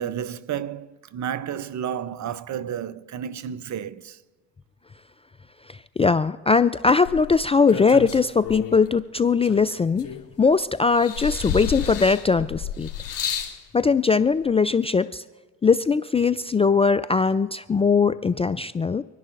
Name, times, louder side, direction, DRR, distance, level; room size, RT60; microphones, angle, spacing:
voice 1, 0.0-4.2, right 9 dB, 45° right, 0.7 m, -31 dB
voice 2, 5.7-10.1 10.4-12.9 13.7-15.2 15.6-19.0, left 5 dB, 15° left, 0.3 m, -20 dB
sound 1, 7.1-8.9 9.4-10.5 10.9-13.6 14.5-14.6, left 9 dB, 55° left, 2.8 m, -31 dB
25.0 x 11.0 x 2.5 m
hypercardioid pair, 55°, 39 cm